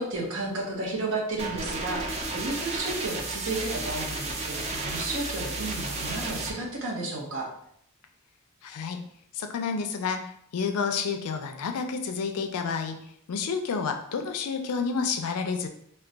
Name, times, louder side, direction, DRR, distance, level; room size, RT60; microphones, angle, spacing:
voice 1, 0.0-7.5, right 2 dB, 60° right, -2 dB, 0.7 m, -32 dB
sound 1, 1.4-6.5, right 2 dB, 30° right, 0.4 m, -33 dB
voice 2, 8.6-9.0 9.3-15.7, left 5 dB, 85° left, 6 dB, 0.4 m, -30 dB
2.2 x 2.2 x 3.7 m, 0.68 s
head